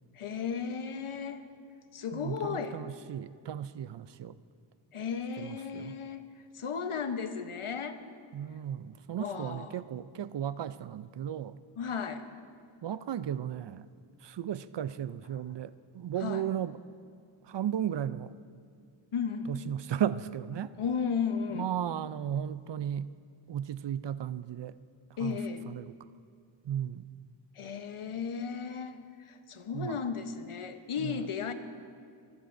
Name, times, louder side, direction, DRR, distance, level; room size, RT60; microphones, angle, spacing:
voice 1, 0.1-1.5 1.9-2.8 4.9-6.2 6.5-8.0 9.2-9.8 11.8-12.3 16.2-16.5 19.1-19.5 20.8-21.7 25.2-25.7 27.5-31.5, left 6 dB, 80° left, 9 dB, 1.0 m, -35 dB
voice 2, 2.1-4.4 5.4-6.0 8.3-11.6 12.8-13.9 14.2-16.8 17.4-18.3 19.5-20.7 21.5-23.1 23.5-24.8 25.2-25.4 25.7-26.0 26.6-27.2 29.7-30.0 31.0-31.3, right 10 dB, 60° right, 16 dB, 0.5 m, -35 dB
24.5 x 15.0 x 2.6 m, 2.2 s
wide cardioid pair, 60°, 49 cm